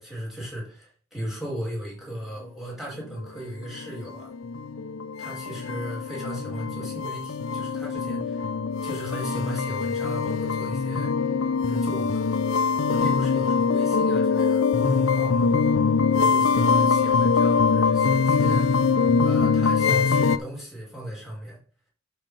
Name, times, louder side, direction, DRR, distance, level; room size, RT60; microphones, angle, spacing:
voice 1, 0.0-4.3 5.2-8.5 8.8-11.1 11.7-12.2 12.9-15.5 16.1-18.9 19.2-21.6, equal, ahead, -5 dB, 4.9 m, -36 dB
sound 1, 3.4-20.4, left 5 dB, 70° left, 0.6 m, -23 dB
11.5 x 4.3 x 5.6 m, 0.41 s
head